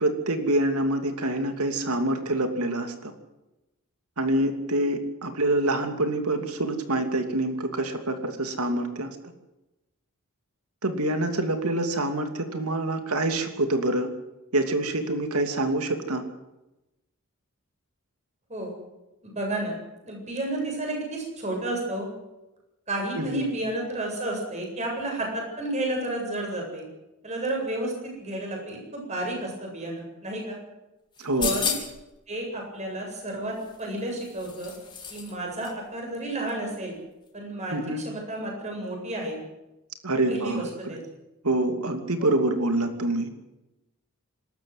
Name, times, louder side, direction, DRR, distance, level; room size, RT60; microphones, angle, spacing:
voice 1, 0.0-3.1 4.2-9.1 10.8-14.1 14.5-16.2 23.2-23.5 31.2-31.5 37.7-38.0 40.0-41.0 41.4-43.3, right 1 dB, 80° right, 7 dB, 2.9 m, -26 dB
voice 2, 19.2-19.8 20.0-22.1 22.9-26.8 27.2-30.6 31.4-31.7 32.3-33.5 33.8-34.7 35.1-36.9 37.3-37.8 38.0-39.4 40.3-41.0 42.2-42.5, right 1 dB, 30° right, 1 dB, 7.9 m, -31 dB
sound 1, 31.2-32.1 33.6-35.3 35.6-35.7, left 6 dB, 20° left, 3.5 m, -32 dB
26.5 x 13.5 x 8.1 m, 0.97 s
head